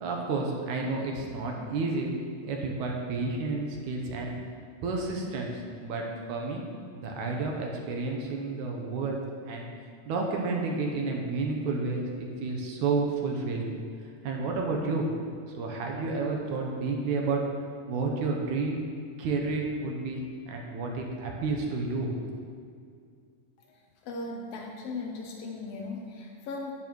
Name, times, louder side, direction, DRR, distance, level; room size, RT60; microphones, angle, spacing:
voice 1, 0.0-2.1 2.4-4.4 4.8-6.6 6.9-9.6 10.1-13.7 14.2-15.1 15.5-17.4 17.9-18.9 19.2-22.4, right 3 dB, 70° right, 0 dB, 2.2 m, -31 dB
voice 2, 24.0-26.7, left 3 dB, 85° left, 0 dB, 1.4 m, -37 dB
10.5 x 8.8 x 3.1 m, 2.3 s
omnidirectional pair, 3.8 m